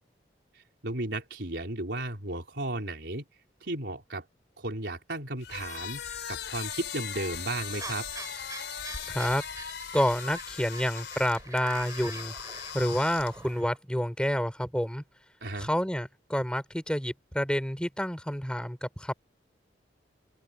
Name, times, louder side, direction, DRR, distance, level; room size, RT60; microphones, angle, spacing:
voice 1, 0.5-3.2 3.6-4.2 4.6-8.1 15.4-15.7, right 2 dB, 70° right, 4.1 m, -34 dB
sound 1, 5.4-13.6, left 7 dB, 75° left, 4.2 m, -39 dB
sound 2, 7.8-13.8, right 3 dB, 20° right, 5.7 m, -45 dB
voice 2, 9.1-9.4 9.9-12.3 12.7-15.0 15.6-19.1, equal, 5° left, 5.6 m, -29 dB
open air
head